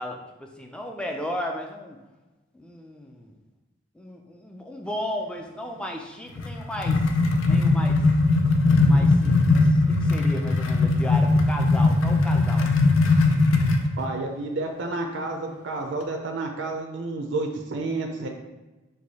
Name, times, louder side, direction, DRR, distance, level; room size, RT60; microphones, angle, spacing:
voice 1, 0.0-2.0 2.5-3.4 4.0-7.0 7.4-8.0 8.8-12.7, left 1 dB, 5° left, 2 dB, 0.4 m, -35 dB
sound 1, 6.4-13.9, left 3 dB, 85° left, 0.5 m, -20 dB
voice 2, 14.0-18.3, right 2 dB, 65° right, 2 dB, 0.5 m, -30 dB
4.8 x 2.2 x 4.0 m, 1.1 s
head